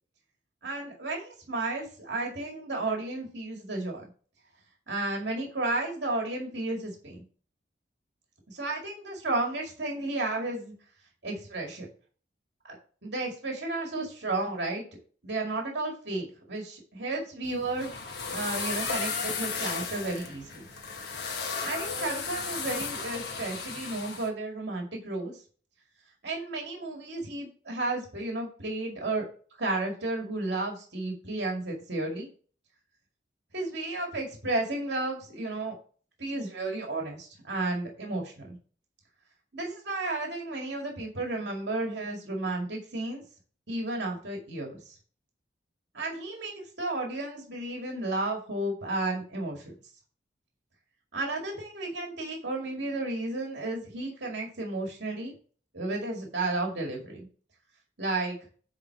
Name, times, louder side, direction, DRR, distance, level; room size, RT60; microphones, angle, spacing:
voice 1, 0.6-4.0 4.9-7.2 8.5-10.7 11.2-11.9 12.7-12.8 13.0-14.8 15.2-17.9 18.3-20.7 21.6-25.4 26.2-29.2 29.6-32.3 33.5-35.7 36.2-38.6 39.5-43.2 43.7-45.0 45.9-49.7 51.1-55.3 55.7-57.3 58.0-58.4, right 2 dB, 70° right, 0 dB, 2.2 m, -33 dB
sound 1, 17.4-24.3, left 5 dB, 60° left, 1.3 m, -35 dB
9.6 x 3.6 x 5.8 m, 0.41 s
head